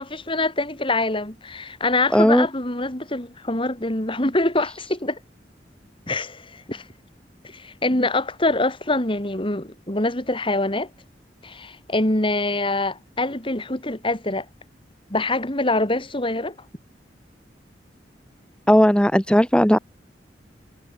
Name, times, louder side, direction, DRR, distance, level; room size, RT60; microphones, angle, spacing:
voice 1, 0.0-5.2 6.1-6.8 7.4-10.9 11.4-14.4 15.1-16.5, left 2 dB, 30° left, 3.3 m, -24 dB
voice 2, 2.1-2.5 18.7-19.8, equal, 5° left, 1.8 m, -16 dB
head